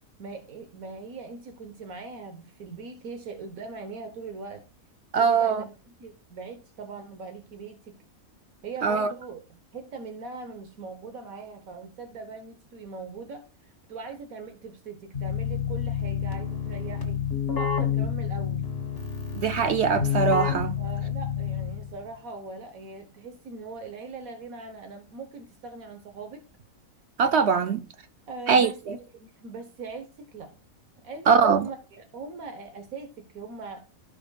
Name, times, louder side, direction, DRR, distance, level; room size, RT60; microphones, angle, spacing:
voice 1, 0.2-4.6 5.1-7.9 8.6-9.4 9.7-17.2 17.6-18.7 20.8-26.4 28.3-30.5 31.0-33.8, right 4 dB, 80° right, 1.5 m, -41 dB
voice 2, 5.1-5.6 8.8-9.1 19.3-20.8 27.2-27.8 28.5-28.9 31.3-31.7, right 6 dB, 65° right, 0.8 m, -22 dB
Keyboard (musical), 15.1-22.0, left 7 dB, 45° left, 1.9 m, -29 dB
15.5 x 5.6 x 2.3 m
omnidirectional pair, 1.4 m